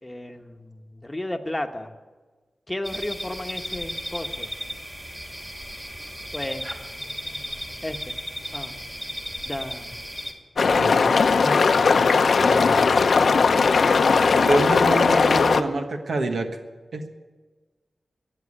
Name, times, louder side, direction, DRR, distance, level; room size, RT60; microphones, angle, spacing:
voice 1, 0.0-1.9 2.7-4.5 6.3-6.7 7.8-8.1 8.5-8.8 9.4-9.9 11.4-12.3 14.2-14.5, left 1 dB, 15° left, 5 dB, 1.1 m, -34 dB
sound 1, 2.8-10.3, equal, 15° right, 2.4 m, -35 dB
sound 2, 10.6-15.6, left 4 dB, 75° left, 0.7 m, -18 dB
voice 2, 10.6-11.2 12.4-12.9 14.5-16.5 16.9-17.1, right 2 dB, 80° right, 5 dB, 1.3 m, -27 dB
14.0 x 9.2 x 9.7 m, 1.3 s
wide cardioid pair, 85°, 0 cm